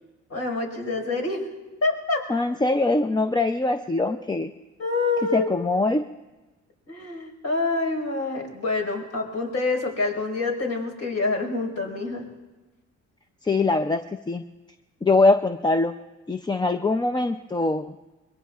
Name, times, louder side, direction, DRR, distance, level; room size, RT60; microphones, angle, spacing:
voice 1, 0.3-1.4 1.8-2.2 4.0-4.1 4.8-5.5 6.9-12.2, left 3 dB, 60° left, 1 dB, 5.0 m, -26 dB
voice 2, 2.3-4.5 5.3-6.0 13.4-14.0 14.3-14.4 15.0-15.9 16.3-18.0, left 2 dB, 15° left, 8 dB, 0.5 m, -22 dB
24.5 x 22.5 x 2.4 m, 1.1 s
cardioid pair, 90°, 30 cm